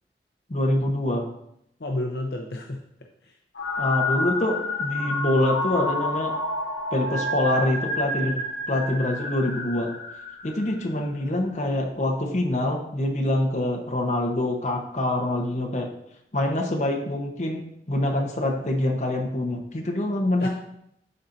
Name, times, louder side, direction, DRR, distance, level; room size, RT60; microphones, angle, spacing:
voice 1, 0.5-1.2 3.8-6.3 6.9-8.4 8.7-9.9 10.4-15.9 16.3-17.6 17.9-20.5, left 1 dB, 40° left, 2 dB, 1.1 m, -25 dB
voice 2, 1.8-2.8 3.2-3.4 3.8-3.9 8.2-8.4 20.4-20.5, left 1 dB, 65° left, 1 dB, 0.7 m, -31 dB
sound 1, 3.5-10.8, left 2 dB, 80° left, 1.3 m, -29 dB
12.0 x 4.4 x 2.7 m, 0.75 s
head